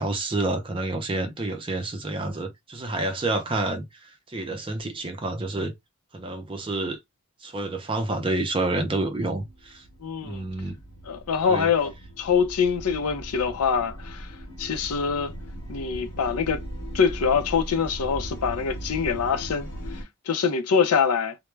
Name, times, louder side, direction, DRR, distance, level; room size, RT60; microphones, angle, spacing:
voice 1, 0.0-3.9 4.3-5.7 6.1-7.0 7.4-9.8 10.2-10.8 11.5-11.7, right 2 dB, 25° right, 0.5 m, -28 dB
sound 1, 8.5-20.0, right 1 dB, 65° left, 0.9 m, -39 dB
voice 2, 10.0-10.4 11.1-15.3 15.7-16.6 16.9-19.7 20.3-21.4, left 6 dB, 90° left, 0.5 m, -24 dB
2.3 x 2.0 x 3.1 m
head